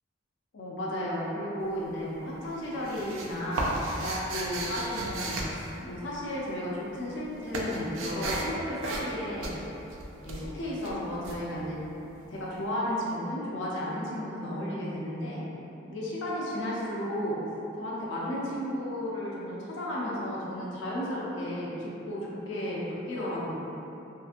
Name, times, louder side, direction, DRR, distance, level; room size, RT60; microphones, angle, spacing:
voice 1, 0.5-9.6 10.2-11.8 12.3-15.4 15.9-17.4 17.8-23.5, left 1 dB, 70° left, -5 dB, 0.5 m, -33 dB
sound 1, 1.6-2.1 2.4-6.5 6.7-12.3, right 2 dB, 90° right, 0.4 m, -35 dB
2.7 x 2.4 x 2.4 m, 2.9 s
head